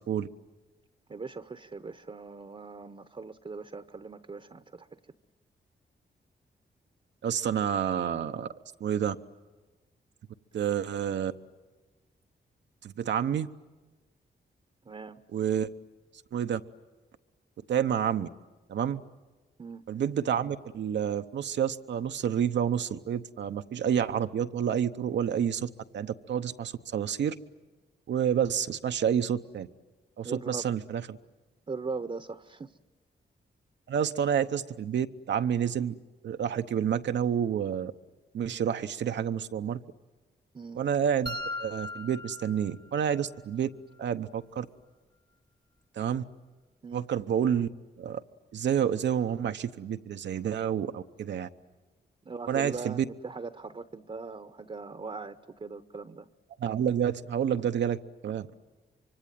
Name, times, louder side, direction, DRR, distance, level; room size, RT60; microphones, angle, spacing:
voice 1, 1.1-4.9 14.8-15.2 19.6-19.8 30.2-30.6 31.7-32.8 40.5-40.8 46.8-47.0 52.2-56.3, right 4 dB, 30° right, 10 dB, 0.8 m, -40 dB
voice 2, 7.2-8.5 8.8-9.2 10.5-11.3 12.8-13.5 15.3-15.7 16.3-16.6 17.7-18.3 18.7-19.0 19.9-27.3 28.1-29.7 30.2-31.2 33.9-35.9 36.2-37.9 38.3-39.8 40.8-43.7 44.0-44.7 46.0-46.2 46.9-47.7 48.0-48.2 48.5-51.5 52.5-53.0 56.6-58.5, right 8 dB, 85° right, 9 dB, 0.8 m, -29 dB
sound 1, 41.3-43.3, left 2 dB, 20° left, 1.1 m, -38 dB
25.0 x 24.0 x 9.2 m, 1.2 s
cardioid pair, 75°, 18 cm